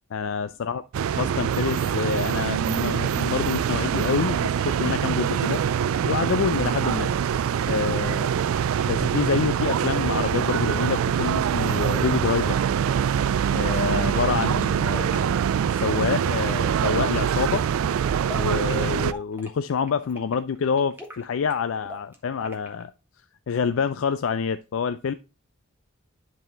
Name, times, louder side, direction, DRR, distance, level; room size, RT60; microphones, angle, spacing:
voice 1, 0.1-0.8 1.2-5.6 6.0-7.1 7.7-8.3 8.9-12.6 13.5-15.4 15.8-17.7 18.3-22.9 23.5-25.1, left 6 dB, 65° left, 0.4 m, -27 dB
sound 1, 0.9-19.1, right 8 dB, 70° right, 0.3 m, -24 dB
sound 2, 8.2-8.3 9.2-9.3 10.7-10.9 11.9-12.1 12.9-13.1 14.0-14.3 14.9-15.1 15.9-16.0 16.6-16.8 17.5-17.6 18.3-18.4 19.1-19.2 20.0-20.1 21.0-21.1 21.9-22.0 22.5-22.6, left 2 dB, 5° left, 1.0 m, -39 dB
sound 3, 8.2-22.8, right 1 dB, 10° right, 1.7 m, -47 dB
10.5 x 4.1 x 3.8 m
head